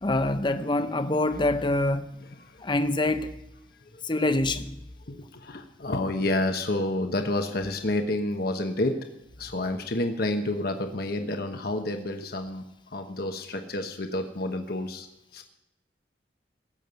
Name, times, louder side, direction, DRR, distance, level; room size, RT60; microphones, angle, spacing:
voice 1, 0.0-2.0 2.6-3.3 4.1-4.6, left 2 dB, 25° left, 0.8 m, -25 dB
voice 2, 2.2-2.7 3.9-4.0 5.1-9.0 9.4-15.1 15.3-15.4, left 1 dB, 55° left, 1.1 m, -29 dB
17.5 x 7.4 x 8.1 m
head